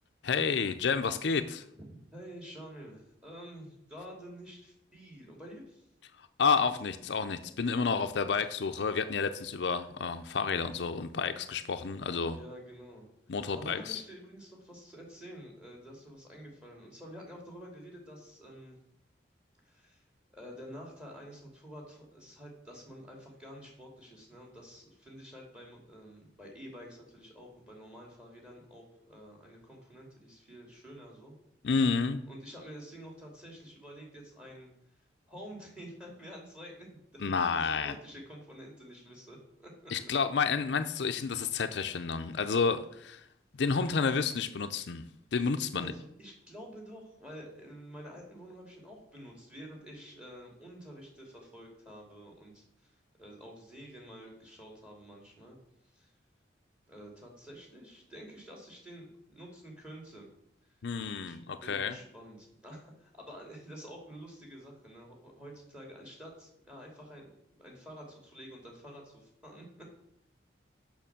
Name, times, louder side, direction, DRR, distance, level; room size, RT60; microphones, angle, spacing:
voice 1, 0.2-1.6 6.2-12.4 13.3-14.0 31.6-32.2 37.2-38.0 39.9-43.3 43.6-45.1 45.3-45.9 60.8-61.9, left 5 dB, 65° left, 8 dB, 0.5 m, -30 dB
voice 2, 1.8-5.9 12.3-18.8 19.6-31.4 32.3-35.0 35.3-36.9 37.1-39.9 45.7-55.6 55.8-56.1 56.9-60.3 60.6-60.9 61.2-67.3 67.6-69.8, equal, 5° right, 0 dB, 2.6 m, -49 dB
6.9 x 5.8 x 7.3 m, 0.77 s
head